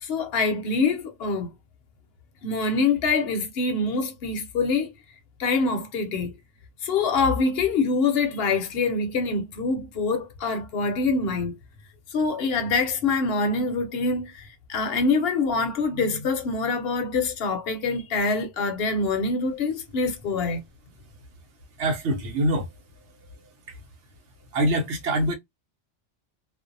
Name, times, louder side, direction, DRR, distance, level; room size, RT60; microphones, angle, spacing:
voice 1, 0.0-1.5 2.4-4.9 5.4-6.4 6.8-11.6 12.1-20.6, left 4 dB, 60° left, 0.8 m, -25 dB
voice 2, 21.8-22.7 24.5-25.3, right 1 dB, 75° right, 1.0 m, -24 dB
2.5 x 2.0 x 2.5 m
omnidirectional pair, 1.2 m